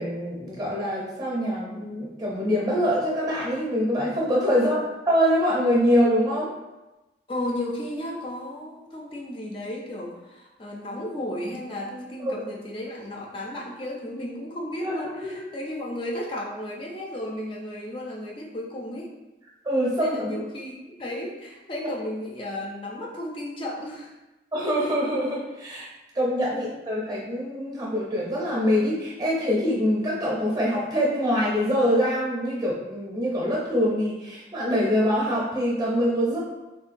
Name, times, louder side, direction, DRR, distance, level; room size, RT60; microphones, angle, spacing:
voice 1, 0.0-6.5 12.2-12.3 14.8-15.4 19.6-20.4 21.7-21.9 24.5-25.9 26.1-36.4, equal, 20° right, -4 dB, 0.6 m, -24 dB
voice 2, 7.3-19.1 20.0-24.1, left 1 dB, 30° left, -2 dB, 0.4 m, -34 dB
3.6 x 2.2 x 2.5 m, 1.0 s
head